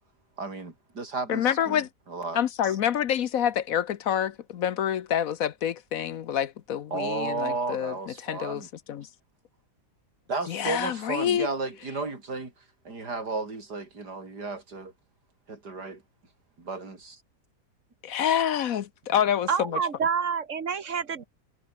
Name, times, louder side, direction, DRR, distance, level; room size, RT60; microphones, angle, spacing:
voice 1, 0.4-2.8 6.9-8.7 10.3-14.9 15.5-16.0 16.6-17.2, right 3 dB, 85° right, 4.8 m, -34 dB
voice 2, 1.3-1.9 2.3-9.1 10.5-11.5 18.0-19.8, left 9 dB, 65° left, 1.2 m, -27 dB
voice 3, 19.5-21.3, right 6 dB, 50° right, 2.1 m, -28 dB
omnidirectional pair, 1.7 m